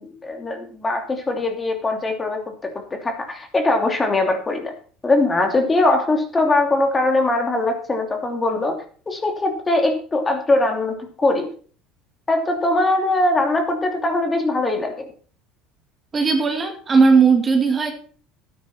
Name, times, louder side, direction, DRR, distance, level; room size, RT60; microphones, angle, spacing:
voice 1, 0.0-4.7 5.0-8.8 9.1-11.5 12.3-15.0, left 2 dB, 20° left, 4 dB, 2.9 m, -21 dB
voice 2, 16.1-17.9, right 5 dB, 25° right, 4 dB, 2.3 m, -17 dB
12.0 x 9.9 x 4.4 m, 0.43 s
supercardioid pair, 100°, 0 cm